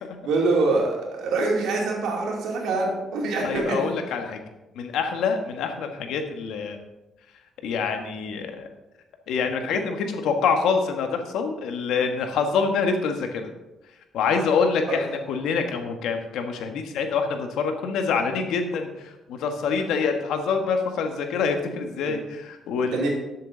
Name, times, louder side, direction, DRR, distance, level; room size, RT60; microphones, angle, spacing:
voice 1, 0.2-3.8 14.9-15.0 22.0-22.2 22.9-23.1, right 3 dB, 85° right, -1 dB, 2.8 m, -24 dB
voice 2, 3.4-4.4 4.7-6.8 7.6-8.7 9.3-13.5 14.1-23.1, left 5 dB, 85° left, 5 dB, 1.4 m, -26 dB
12.5 x 7.6 x 3.9 m, 1.0 s
cardioid pair, 90°, 0 cm